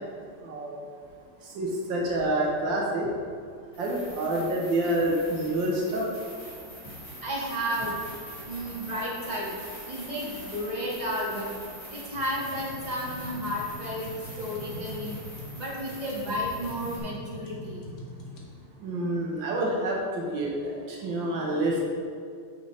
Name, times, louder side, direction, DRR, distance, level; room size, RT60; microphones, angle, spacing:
voice 1, 0.4-0.8 1.4-3.1 3.8-6.1 18.8-21.8, right 1 dB, 85° right, -2 dB, 1.7 m, -28 dB
sound 1, 3.7-17.0, equal, 75° left, 2.1 m, -44 dB
voice 2, 7.2-7.9 8.4-9.5 9.9-11.5 11.9-14.1 14.4-15.2 15.6-17.8, equal, 25° right, -5 dB, 1.4 m, -32 dB
sound 2, 12.1-18.5, left 1 dB, 55° left, 1.4 m, -43 dB
9.0 x 5.5 x 3.2 m, 2.2 s
omnidirectional pair, 2.0 m